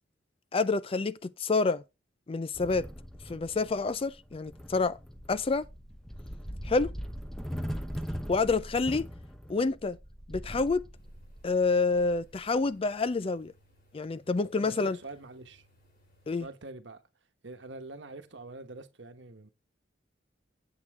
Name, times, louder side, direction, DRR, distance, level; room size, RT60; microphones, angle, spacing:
voice 1, 0.5-1.8 2.3-2.9 3.3-5.0 5.3-5.7 6.7-6.9 8.3-9.1 9.5-10.0 10.3-10.8 11.4-13.5 13.9-15.0 16.3-16.5, left 3 dB, 30° left, 0.4 m, -28 dB
sound 1, 2.5-12.7, equal, ahead, 0.9 m, -41 dB
sound 2, 10.9-16.4, equal, 50° left, 3.1 m, -64 dB
voice 2, 14.6-15.7 16.4-17.0 17.4-19.5, right 3 dB, 70° right, 1.2 m, -45 dB
8.4 x 8.1 x 3.6 m
head